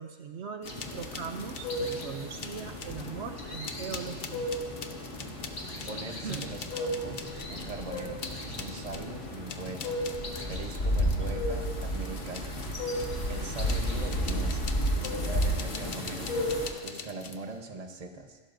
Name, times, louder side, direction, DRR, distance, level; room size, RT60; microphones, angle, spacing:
voice 1, 0.0-4.5 6.2-6.6, right 6 dB, 70° right, 6 dB, 0.9 m, -40 dB
sound 1, 0.6-16.7, equal, 85° left, 2.3 m, -33 dB
sound 2, 0.6-2.1 2.4-3.2 3.6-13.2 13.7-17.5, left 5 dB, 55° left, 1.0 m, -44 dB
voice 2, 5.9-8.2 8.6-10.0 10.4-12.6 13.3-14.7 15.0-16.3 16.8-18.4, right 3 dB, 35° right, 4 dB, 1.1 m, -41 dB
26.5 x 12.0 x 2.6 m, 1.4 s
omnidirectional pair, 1.2 m